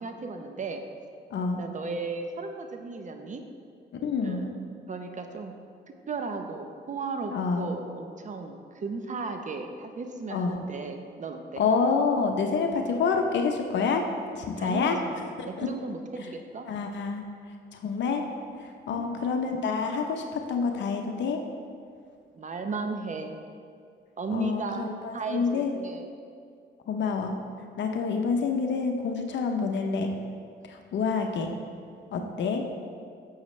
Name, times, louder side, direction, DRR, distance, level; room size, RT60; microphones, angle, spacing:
voice 1, 0.0-0.8 1.6-3.5 4.2-4.5 4.9-5.5 6.1-11.7 14.6-16.7 18.9-19.2 22.3-23.4 24.2-26.1 32.2-32.5, right 4 dB, 40° right, 5 dB, 0.8 m, -35 dB
voice 2, 1.3-1.6 4.0-4.5 7.3-7.7 10.3-10.6 11.6-14.1 14.3-15.0 15.4-15.7 16.7-17.2 17.7-18.2 18.6-21.4 24.3-25.7 26.9-27.4 27.8-30.1 30.7-31.5 32.1-32.6, left 5 dB, 65° left, 4 dB, 0.8 m, -27 dB
10.5 x 7.4 x 3.2 m, 2.3 s
cardioid pair, 90°, 20 cm